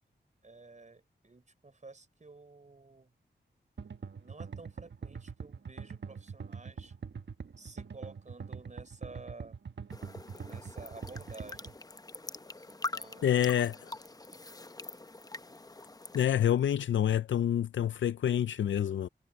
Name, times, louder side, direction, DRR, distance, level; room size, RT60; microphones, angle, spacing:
voice 1, 0.4-3.2 4.2-6.9 7.6-9.6 10.3-11.8 12.6-14.0, right 3 dB, 40° right, 5.4 m, -52 dB
sound 1, 3.8-11.7, right 6 dB, 70° right, 1.4 m, -43 dB
sound 2, 9.9-16.3, left 2 dB, 20° left, 0.7 m, -44 dB
voice 2, 13.2-13.9 16.1-19.1, left 10 dB, 85° left, 0.4 m, -27 dB
wide cardioid pair, 80°, 19 cm